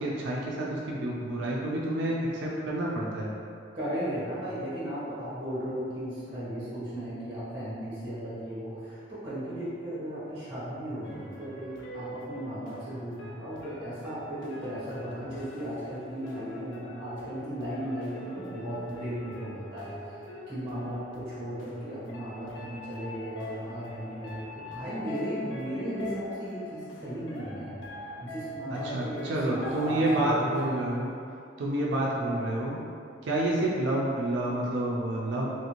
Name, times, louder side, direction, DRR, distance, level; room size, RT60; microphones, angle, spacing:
voice 1, 0.0-3.3 28.7-31.1 31.6-32.8 33.2-35.5, right 1 dB, 80° right, -4 dB, 0.4 m, -29 dB
voice 2, 3.7-20.0 20.5-27.7 28.2-30.5 32.2-32.4, equal, 30° right, -11 dB, 0.9 m, -36 dB
sound 1, 11.0-31.0, left 2 dB, 85° left, 0.4 m, -44 dB
3.1 x 2.6 x 2.9 m, 2.5 s
head